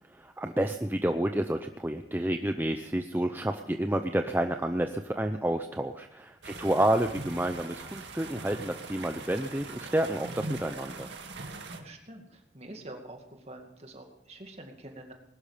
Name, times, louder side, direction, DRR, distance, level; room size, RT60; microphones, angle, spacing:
voice 1, 0.4-11.1, right 1 dB, 10° right, 6 dB, 0.6 m, -29 dB
sound 1, 6.4-11.8, right 3 dB, 75° right, 1.9 m, -41 dB
voice 2, 6.5-7.0 11.6-15.1, right 1 dB, 35° right, 3 dB, 2.3 m, -47 dB
20.0 x 12.0 x 5.1 m, 0.82 s
head